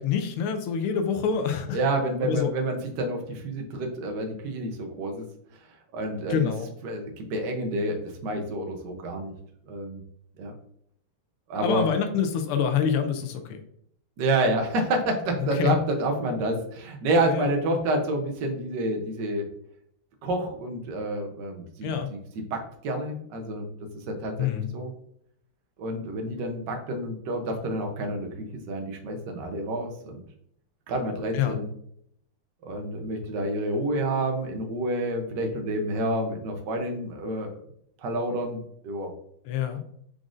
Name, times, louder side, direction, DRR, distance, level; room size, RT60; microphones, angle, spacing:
voice 1, 0.0-1.8 2.2-2.5 6.3-6.7 11.6-13.6 15.5-15.7 17.3-17.5 21.8-22.1 24.4-24.7 31.3-31.6 39.4-39.8, left 7 dB, 85° left, 7 dB, 1.5 m, -26 dB
voice 2, 1.7-5.2 5.9-6.5 6.8-9.3 9.7-10.0 10.4-10.5 11.5-11.9 14.2-19.5 20.2-22.2 22.5-23.7 24.1-24.5 24.7-24.9 25.8-28.3 28.7-30.2 30.9-31.6 32.6-37.5 38.0-38.6 38.8-39.1, right 1 dB, 65° right, 3 dB, 1.3 m, -28 dB
4.9 x 3.8 x 2.5 m, 0.69 s
omnidirectional pair, 2.4 m